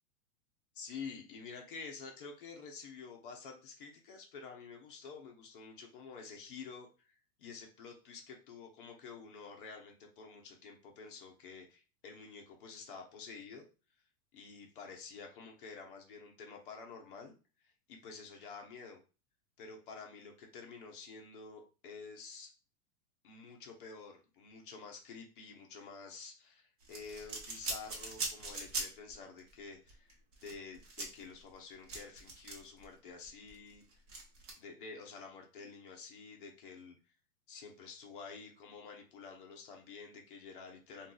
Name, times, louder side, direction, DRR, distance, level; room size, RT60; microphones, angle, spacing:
voice 1, 0.7-13.6 14.3-17.3 17.9-19.0 19.6-22.5 23.2-34.0 34.6-37.0 37.5-41.1, left 5 dB, 35° left, 2 dB, 0.6 m, -49 dB
sound 1, 26.8-29.1 29.4-29.5 29.9-32.9 33.2-34.5, right 3 dB, 35° right, 0.9 m, -41 dB
2.6 x 2.3 x 3.7 m, 0.33 s
supercardioid pair, 165°, 46 cm